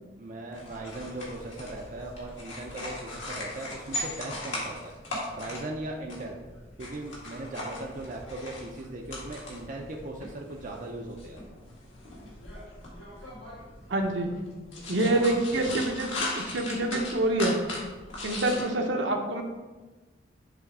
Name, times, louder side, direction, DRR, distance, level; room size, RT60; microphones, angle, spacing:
voice 1, 0.2-4.9 5.3-6.4 6.8-11.4 15.0-15.3 18.5-18.6, right 1 dB, 40° right, 0 dB, 0.5 m, -38 dB
sound 1, 0.5-18.6, left 1 dB, 75° left, 2.0 m, -39 dB
voice 2, 13.9-14.3 14.9-17.6 18.2-19.4, right 2 dB, 70° right, 3 dB, 0.9 m, -26 dB
7.0 x 3.3 x 4.7 m, 1.2 s
head